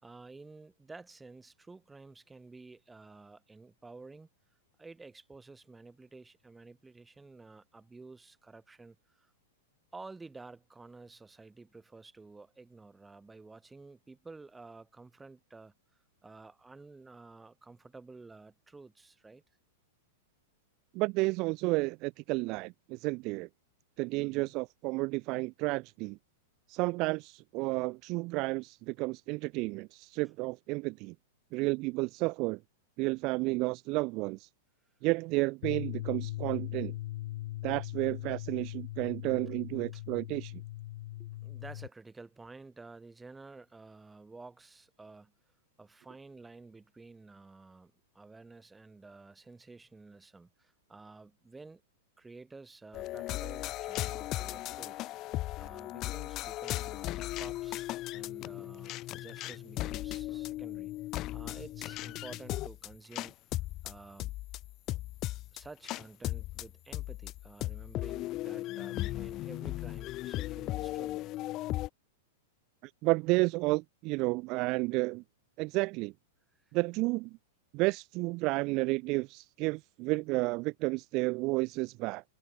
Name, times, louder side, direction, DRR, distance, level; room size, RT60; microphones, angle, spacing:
voice 1, 0.0-4.3 4.8-9.3 9.9-15.7 16.2-19.4 24.2-24.5 39.9-40.0 41.2-45.3 45.8-51.8 52.2-55.0 55.6-60.9 61.3-63.4 63.8-64.4 65.5-71.3, right 3 dB, 10° right, 4.3 m, -51 dB
voice 2, 20.9-23.5 24.0-26.2 26.7-31.1 31.5-32.6 33.0-34.5 35.0-36.9 37.6-40.6 72.8-75.2 75.6-76.1 76.7-77.4 77.7-82.2, right 24 dB, 45° right, 0.3 m, -31 dB
sound 1, 35.6-41.9, left 16 dB, 60° left, 1.8 m, -40 dB
sound 2, 52.9-71.9, left 16 dB, 40° left, 0.6 m, -37 dB
hypercardioid pair, 110°, 0 cm